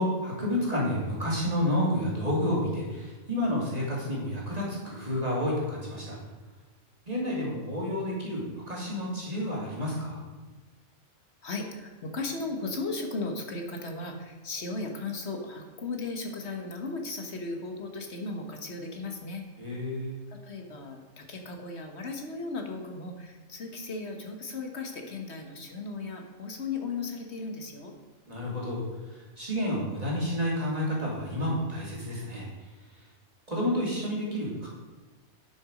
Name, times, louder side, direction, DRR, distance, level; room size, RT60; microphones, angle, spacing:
voice 1, 0.0-6.2 7.0-10.2 19.6-20.2 28.3-28.8 29.1-32.5 33.5-34.7, left 1 dB, 25° right, -5 dB, 2.7 m, -30 dB
voice 2, 11.4-19.4 20.3-28.0, left 3 dB, 50° left, 3 dB, 1.5 m, -36 dB
10.5 x 6.2 x 5.1 m, 1.3 s
omnidirectional pair, 1.5 m